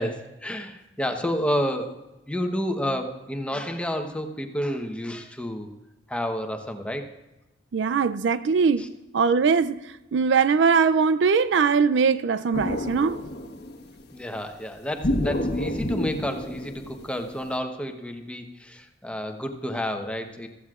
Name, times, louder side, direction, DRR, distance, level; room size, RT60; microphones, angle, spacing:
voice 1, 0.0-5.7 6.1-7.1 8.8-8.9 14.1-20.5, equal, 5° left, 1.0 m, -30 dB
voice 2, 7.7-8.9 9.1-9.8 10.1-13.2, right 5 dB, 65° right, 0.4 m, -21 dB
sound 1, 12.5-14.0 15.0-17.5, left 1 dB, 60° left, 1.2 m, -29 dB
15.5 x 14.0 x 2.4 m
head